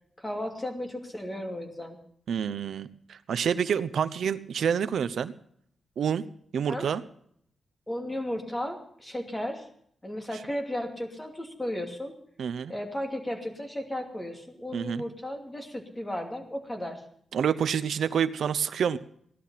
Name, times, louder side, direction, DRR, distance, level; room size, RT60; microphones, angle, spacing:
voice 1, 0.2-2.0 6.7-6.9 7.9-9.7 10.0-12.2 12.7-17.0, left 1 dB, 15° left, 3 dB, 2.7 m, -34 dB
voice 2, 2.3-5.3 6.0-6.2 6.5-7.0 12.4-12.7 14.7-15.0 17.3-19.0, right 7 dB, 75° right, 13 dB, 0.7 m, -28 dB
17.0 x 12.0 x 5.7 m, 0.65 s
wide cardioid pair, 155°, 0 cm